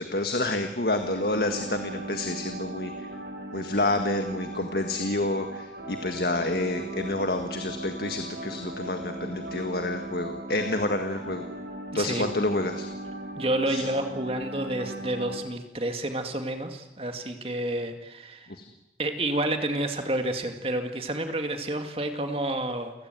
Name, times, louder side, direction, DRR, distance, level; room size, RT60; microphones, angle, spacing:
voice 1, 0.0-3.1 3.5-11.4 11.9-12.9 13.7-13.9 18.5-18.7, left 2 dB, 60° left, 6 dB, 1.7 m, -29 dB
sound 1, 0.9-15.4, right 1 dB, 70° right, 5.1 m, -38 dB
voice 2, 11.9-12.3 13.4-18.5 19.0-22.9, right 1 dB, 35° right, 6 dB, 2.3 m, -29 dB
29.5 x 17.0 x 9.4 m, 0.97 s
head